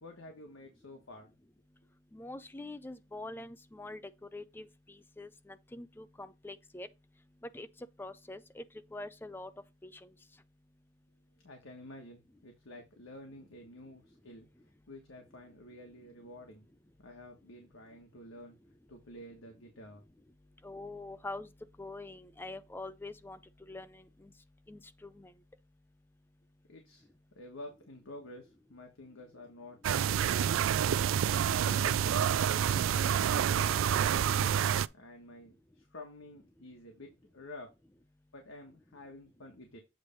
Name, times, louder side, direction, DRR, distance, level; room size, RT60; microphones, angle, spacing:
voice 1, 0.0-1.3 11.4-16.7 17.0-18.6 18.9-20.0 26.7-27.1 27.3-29.8 30.3-30.6 31.6-32.0 32.9-34.6 34.9-37.7 38.3-39.8, left 1 dB, 85° left, 1.4 m, -50 dB
voice 2, 2.1-4.0 4.3-6.9 7.5-7.7 8.0-8.6 8.9-9.5 9.8-10.1 20.6-21.5 21.8-23.4 23.7-24.3 24.7-25.3, left 2 dB, 10° left, 0.4 m, -44 dB
sound 1, 29.8-34.9, right 9 dB, 85° right, 0.3 m, -28 dB
8.0 x 3.3 x 5.3 m
head